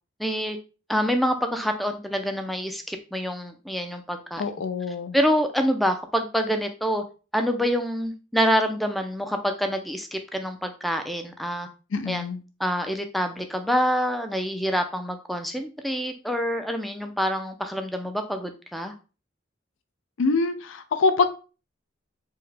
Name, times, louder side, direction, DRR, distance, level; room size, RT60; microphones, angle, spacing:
voice 1, 0.2-0.6 0.9-4.4 5.1-7.0 7.3-11.7 12.1-12.2 12.6-18.9, equal, ahead, 0.3 m, -26 dB
voice 2, 4.4-5.2 11.9-12.4 20.2-21.2, left 4 dB, 80° left, 0.5 m, -24 dB
4.6 x 2.1 x 3.3 m
head